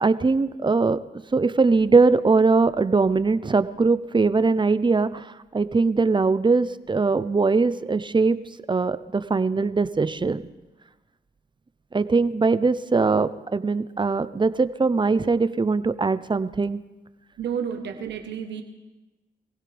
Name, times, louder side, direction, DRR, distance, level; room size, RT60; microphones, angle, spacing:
voice 1, 0.0-1.0 1.3-8.4 8.7-10.4 11.9-16.8, right 4 dB, 25° right, 13 dB, 0.7 m, -21 dB
voice 2, 17.4-18.6, right 7 dB, 85° right, 5 dB, 1.2 m, -30 dB
22.5 x 16.0 x 3.5 m, 1.1 s
cardioid pair, 55°, 18 cm